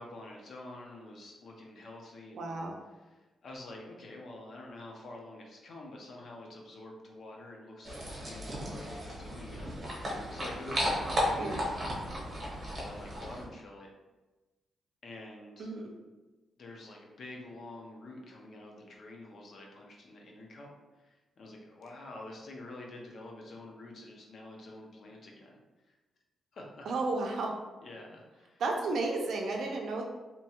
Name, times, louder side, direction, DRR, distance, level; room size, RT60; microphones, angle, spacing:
voice 1, 0.0-2.5 2.9-12.1 12.8-13.9 15.0-15.7 16.6-26.0 26.5-26.9 27.8-28.6, left 2 dB, 55° left, 0 dB, 0.6 m, -47 dB
voice 2, 2.3-2.7 11.4-11.6 15.6-15.9 26.9-27.5 28.6-30.1, right 3 dB, 70° right, 1 dB, 0.5 m, -33 dB
sound 1, 7.8-13.4, equal, 35° right, 0.8 m, -35 dB
2.9 x 2.3 x 2.9 m, 1.1 s
cardioid pair, 125°, 0 cm